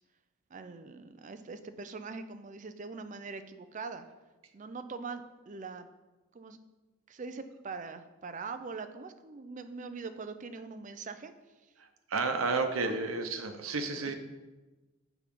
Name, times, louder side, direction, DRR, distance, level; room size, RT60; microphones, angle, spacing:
voice 1, 0.5-4.0 4.5-5.9 6.3-6.6 7.1-11.3 12.8-13.0 14.0-14.1, right 4 dB, 40° right, 9 dB, 0.5 m, -42 dB
voice 2, 11.8-14.1, right 3 dB, 90° right, 6 dB, 0.9 m, -32 dB
7.1 x 5.7 x 5.3 m, 1.2 s
head